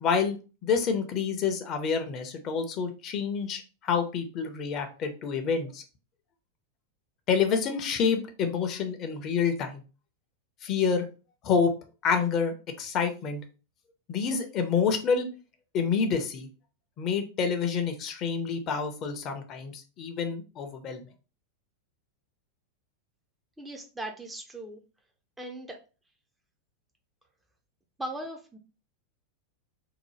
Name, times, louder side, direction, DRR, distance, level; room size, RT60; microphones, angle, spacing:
voice 1, 0.0-5.8 7.3-9.8 10.6-11.1 11.4-11.7 12.0-13.4 14.1-15.3 15.7-16.5 17.0-21.0, left 6 dB, 35° left, 6 dB, 0.6 m, -28 dB
voice 2, 23.6-24.8 25.4-25.8 28.0-28.6, right 1 dB, 10° right, 3 dB, 0.4 m, -38 dB
2.8 x 2.1 x 3.1 m, 0.34 s
figure-of-eight pair, 90°, 0 cm